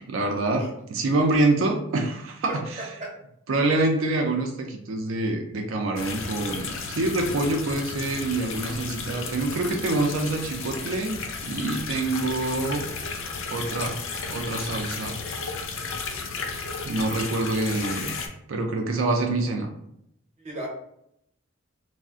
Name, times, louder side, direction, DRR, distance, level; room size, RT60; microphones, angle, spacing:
voice 1, 0.0-2.9 3.5-12.9 13.5-14.0 14.3-15.1 16.5-18.2 18.5-19.7, right 2 dB, 70° right, 2 dB, 0.4 m, -26 dB
voice 2, 2.5-3.1 20.4-20.7, right 1 dB, 35° right, -2 dB, 0.8 m, -35 dB
sound 1, 6.0-18.3, left 4 dB, 65° left, 0.4 m, -33 dB
2.4 x 2.0 x 3.5 m, 0.77 s
head